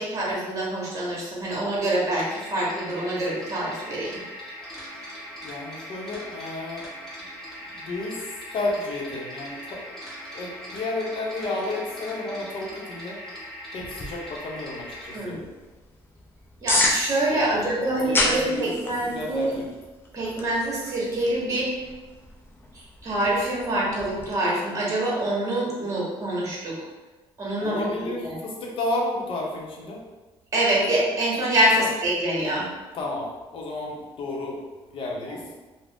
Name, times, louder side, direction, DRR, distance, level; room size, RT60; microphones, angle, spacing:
voice 1, 0.0-4.2 15.1-15.4 16.6-19.6 20.1-21.7 22.7-26.7 27.4-27.9 28.2-28.3 30.5-32.6, right 1 dB, 30° right, -5 dB, 1.0 m, -25 dB
sound 1, 2.1-15.2, equal, 5° left, 1.0 m, -40 dB
voice 2, 5.4-6.9 7.2-7.3 7.6-9.8 10.3-13.2 13.7-15.4 17.3-18.7 19.0-19.7 27.6-30.0 31.8-31.9 32.9-34.6 34.9-35.5, left 2 dB, 55° left, -2 dB, 0.7 m, -32 dB
sound 2, 13.8-24.3, left 1 dB, 20° left, 0.5 m, -32 dB
2.4 x 2.0 x 3.4 m, 1.2 s
cardioid pair, 110°, 10 cm